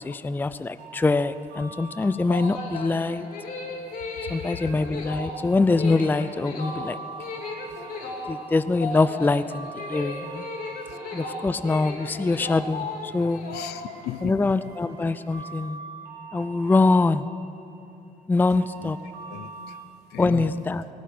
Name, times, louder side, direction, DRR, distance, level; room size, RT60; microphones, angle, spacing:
voice 1, 0.0-3.3 4.3-7.0 8.3-10.5 11.1-13.4 14.2-15.8 16.3-17.3 18.3-19.0 20.2-20.8, left 3 dB, 10° left, 14 dB, 0.5 m, -24 dB
sound 1, 0.8-19.8, right 4 dB, 85° right, 4.8 m, -45 dB
sound 2, 2.1-14.2, left 3 dB, 55° left, 3.4 m, -35 dB
voice 2, 13.5-14.4 18.8-19.0 19.3-19.8 20.1-20.5, left 14 dB, 80° left, 13 dB, 0.6 m, -36 dB
18.0 x 17.0 x 8.5 m, 2.9 s
cardioid pair, 110°, 17 cm